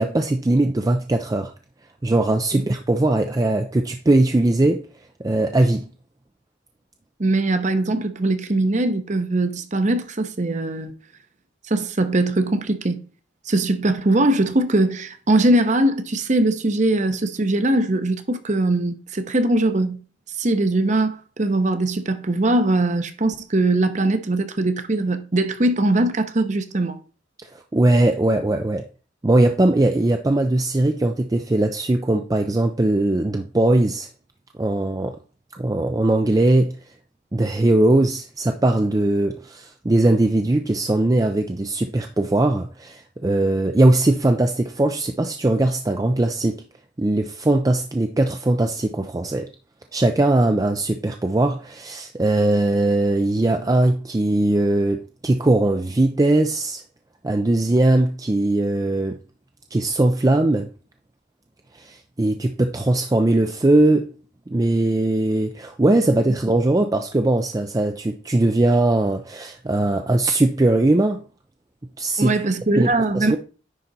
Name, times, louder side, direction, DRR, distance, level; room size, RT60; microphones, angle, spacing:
voice 1, 0.0-1.5 2.0-4.9 5.2-5.9 27.4-28.9 29.2-34.1 34.6-35.2 35.5-36.7 37.3-46.6 47.0-49.5 49.9-56.8 57.2-59.2 59.7-60.7 61.7-64.1 64.5-71.2 72.0-72.4 72.7-72.9 73.1-73.4, right 2 dB, 20° right, 0.4 m, -20 dB
voice 2, 7.2-10.9 11.7-13.0 13.5-20.0 20.4-27.0 72.2-73.3, right 2 dB, 40° right, 0.8 m, -21 dB
9.9 x 3.9 x 4.1 m
head